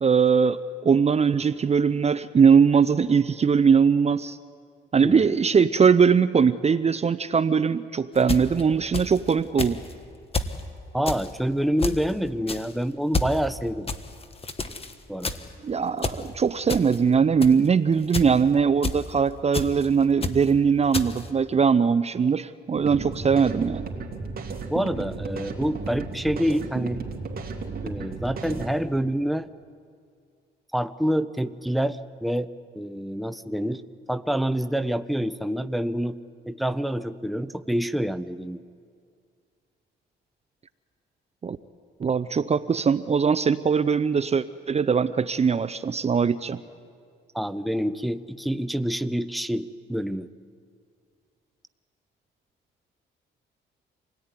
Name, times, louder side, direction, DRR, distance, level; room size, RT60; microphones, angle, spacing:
voice 1, 0.0-4.4 4.9-9.8 15.6-23.8 41.4-41.6 42.0-46.6, right 6 dB, 30° right, 14 dB, 0.7 m, -21 dB
voice 2, 5.0-5.4 10.9-13.9 15.1-15.4 24.6-27.0 27.8-29.5 30.7-32.5 32.7-33.8 34.1-36.2 36.5-38.6 47.3-50.3, equal, ahead, 11 dB, 0.8 m, -27 dB
sound 1, 8.2-9.3 9.6-9.9 10.3-10.6 11.1-11.3 11.8-12.1 12.5-12.7 13.1-13.4 13.9-14.9 15.2-15.6 16.0-16.3 16.7-17.0 17.4-17.7 18.1-18.4 18.8-19.1 19.5-19.9 20.2-20.5 20.9-21.3, left 3 dB, 30° left, 1.6 m, -29 dB
sound 2, 22.8-28.7, right 4 dB, 50° right, 3.3 m, -34 dB
26.5 x 18.0 x 9.8 m, 2.2 s
cardioid pair, 90°, 20 cm